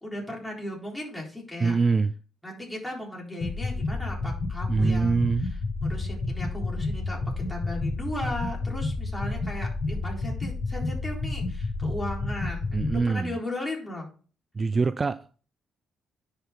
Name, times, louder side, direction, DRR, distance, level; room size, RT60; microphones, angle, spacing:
voice 1, 0.0-1.7 2.4-5.5 5.8-14.1, left 1 dB, 10° left, 3.9 m, -36 dB
voice 2, 1.6-2.1 4.7-5.5 12.7-13.4 14.5-15.4, right 4 dB, 30° right, 0.3 m, -24 dB
sound 1, 3.4-13.0, left 3 dB, 45° left, 1.6 m, -30 dB
10.0 x 5.5 x 3.8 m
cardioid pair, 90°, 0 cm